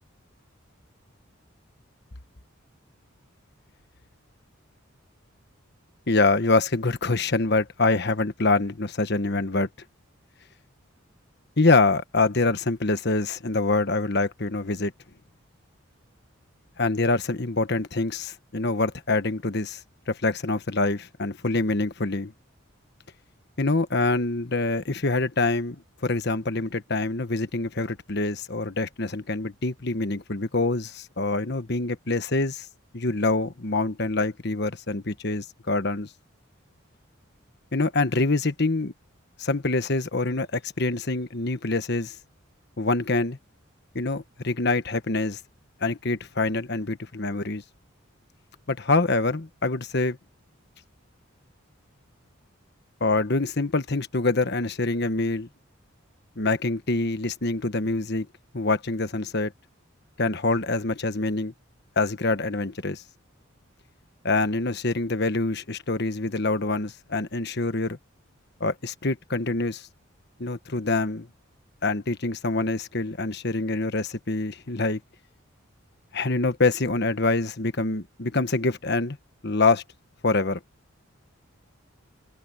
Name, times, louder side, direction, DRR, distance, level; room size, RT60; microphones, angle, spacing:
voice 1, 6.1-9.7 11.6-14.9 16.8-19.8 20.1-22.3 23.6-32.7 32.9-36.1 37.7-38.9 39.4-42.1 42.8-43.4 43.9-45.4 45.8-47.6 48.7-50.2 53.0-55.5 56.4-58.3 58.5-59.5 60.2-61.5 62.0-63.0 64.2-68.0 68.6-69.9 70.4-71.3 71.8-75.0 76.1-79.2 79.4-79.8 80.2-80.6, left 3 dB, 55° left, 1.2 m, -25 dB
head